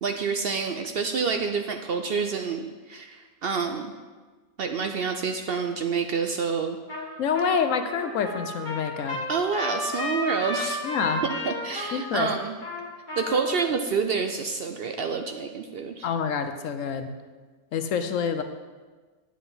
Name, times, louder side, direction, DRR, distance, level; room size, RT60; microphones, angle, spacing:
voice 1, 0.0-3.9 4.6-6.8 9.3-10.8 11.2-12.5 13.2-16.1, right 5 dB, 65° right, 5 dB, 0.6 m, -28 dB
Trumpet, 6.9-7.1 7.3-13.6, left 1 dB, 30° left, 1.9 m, -33 dB
voice 2, 7.2-9.2 10.8-11.2 11.9-12.3 16.0-17.1 17.7-18.4, left 6 dB, 65° left, 8 dB, 1.0 m, -27 dB
9.3 x 7.8 x 4.0 m, 1.4 s
omnidirectional pair, 1.5 m